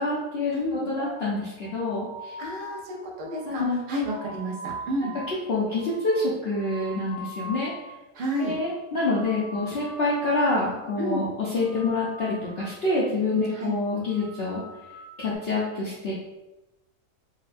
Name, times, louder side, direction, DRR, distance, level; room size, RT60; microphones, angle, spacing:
voice 1, 0.0-2.3 3.5-3.8 5.5-7.7 8.4-14.6 15.2-16.1, left 2 dB, 60° left, -7 dB, 0.6 m, -27 dB
voice 2, 0.5-0.9 2.4-5.1 8.1-8.5 11.0-11.3 13.5-13.7, equal, 60° right, -2 dB, 0.5 m, -30 dB
sound 1, 1.0-8.0 8.2-8.7 9.0-10.5 10.7-11.2 11.5-13.0 13.3-13.7 14.0-15.4, right 1 dB, 35° right, 1.1 m, -42 dB
3.9 x 2.1 x 2.5 m, 1.0 s
omnidirectional pair, 1.6 m